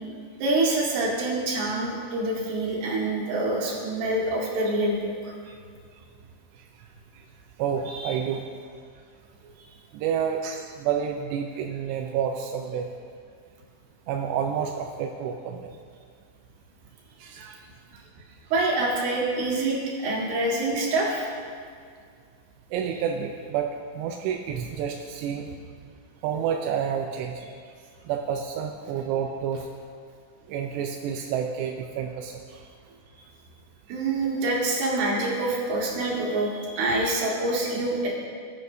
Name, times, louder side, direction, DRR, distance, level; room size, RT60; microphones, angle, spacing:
voice 1, 0.4-5.0 5.2-5.3 18.5-21.3 33.9-38.1, right 2 dB, 75° right, -3 dB, 3.8 m, -26 dB
voice 2, 7.6-8.5 9.9-12.9 14.1-15.7 17.2-17.6 17.9-18.0 22.7-25.5 26.2-27.5 28.1-29.7 30.5-32.6 34.2-34.4, right 8 dB, 90° right, 2 dB, 2.8 m, -29 dB
20.5 x 8.7 x 2.7 m, 2.2 s
omnidirectional pair, 4.8 m